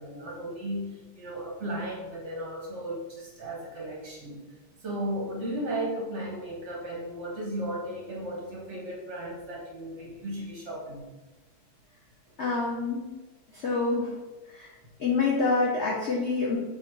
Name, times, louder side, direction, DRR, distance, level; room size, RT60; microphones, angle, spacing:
voice 1, 0.0-4.4 4.8-11.1, right 1 dB, 60° right, -3 dB, 0.7 m, -35 dB
voice 2, 12.4-13.0 13.5-14.2 14.5-14.7 15.0-16.6, left 3 dB, 85° left, -5 dB, 0.6 m, -27 dB
3.7 x 2.2 x 4.4 m, 1.2 s
omnidirectional pair, 2.2 m